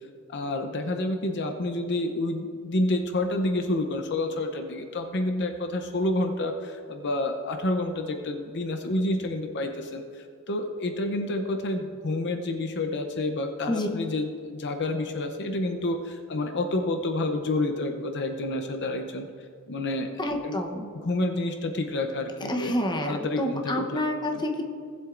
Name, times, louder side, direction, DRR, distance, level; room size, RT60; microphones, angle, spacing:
voice 1, 0.3-19.3 19.7-20.1 20.4-20.5 21.0-22.8 23.0-24.0 24.3-24.4, left 2 dB, 55° left, 5 dB, 0.6 m, -29 dB
voice 2, 20.2-20.9 22.5-24.6, left 1 dB, 20° left, 2 dB, 0.8 m, -28 dB
18.0 x 7.8 x 2.5 m, 2.3 s
head